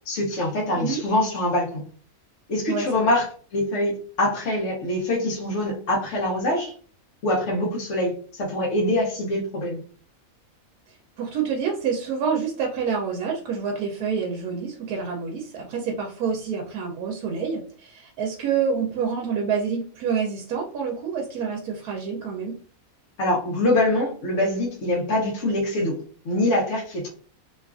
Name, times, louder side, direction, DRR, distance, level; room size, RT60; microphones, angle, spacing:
voice 1, 0.1-1.8 2.5-3.3 3.5-6.7 7.2-9.8 23.2-27.1, left 1 dB, 60° left, -3 dB, 0.9 m, -24 dB
voice 2, 2.7-3.1 11.2-22.6, right 6 dB, 90° right, 0 dB, 1.1 m, -27 dB
2.9 x 2.3 x 2.3 m, 0.43 s
omnidirectional pair, 1.5 m